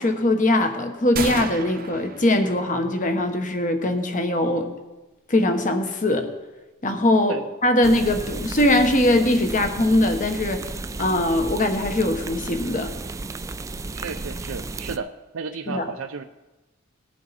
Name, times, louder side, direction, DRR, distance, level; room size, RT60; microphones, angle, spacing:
voice 1, 0.0-4.7 5.3-6.3 6.8-10.7 11.0-12.9 15.7-15.9, left 1 dB, 40° left, 6 dB, 1.2 m, -21 dB
sound 1, 1.2-3.0, right 5 dB, 45° right, 0.8 m, -33 dB
sound 2, 7.8-15.0, right 3 dB, 15° right, 0.3 m, -33 dB
voice 2, 13.9-15.1 15.3-16.2, right 5 dB, 80° right, 6 dB, 0.5 m, -33 dB
19.5 x 7.3 x 4.2 m, 1.1 s
head